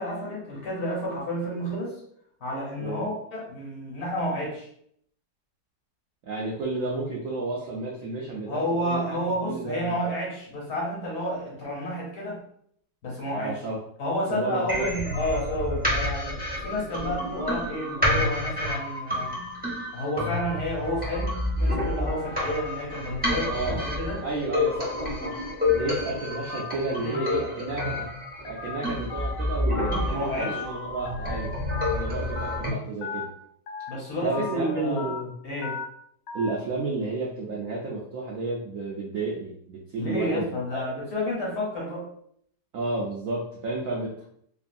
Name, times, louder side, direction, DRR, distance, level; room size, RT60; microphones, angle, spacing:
voice 1, 0.0-2.0 2.4-4.7 8.5-12.4 13.0-13.6 14.0-19.3 19.9-21.3 21.6-24.2 25.8-25.9 27.0-27.2 30.1-30.6 33.9-35.1 35.4-35.8 40.0-42.1, left 1 dB, 60° left, -3 dB, 1.4 m, -30 dB
voice 2, 2.8-3.1 6.2-10.0 13.3-13.8 14.3-14.9 23.5-23.9 24.2-28.1 28.4-31.5 31.9-33.3 34.2-35.3 36.3-40.8 42.7-44.2, right 3 dB, 75° right, -3 dB, 0.7 m, -32 dB
sound 1, 14.7-32.7, left 1 dB, 10° right, 0.5 m, -29 dB
Telephone, 26.5-26.7 27.1-27.4 27.8-28.0 28.4-28.7 29.1-29.3 29.7-30.0 30.4-30.6 31.1-31.3 31.7-31.9 32.4-32.6 33.0-33.2 33.7-33.9 34.3-34.5 35.0-35.2 35.6-35.8 36.3-36.5, left 6 dB, 75° left, 1.2 m, -35 dB
3.1 x 2.5 x 2.5 m, 0.67 s
omnidirectional pair, 1.9 m